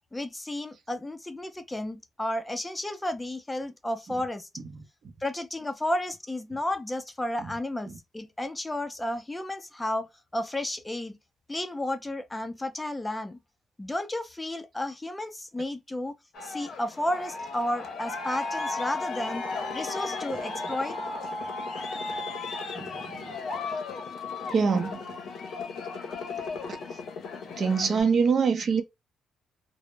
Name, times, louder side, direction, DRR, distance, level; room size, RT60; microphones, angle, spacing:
voice 1, 0.1-4.5 5.2-11.2 11.5-13.4 13.8-16.1 16.4-19.4 19.7-21.0, left 1 dB, 15° left, 0.5 m, -32 dB
Aircraft, 16.3-28.0, left 3 dB, 65° left, 0.6 m, -35 dB
voice 2, 22.8-23.3 24.5-25.0 27.6-28.8, right 5 dB, 50° right, 0.6 m, -24 dB
2.0 x 2.0 x 3.1 m
cardioid pair, 90°, 0 cm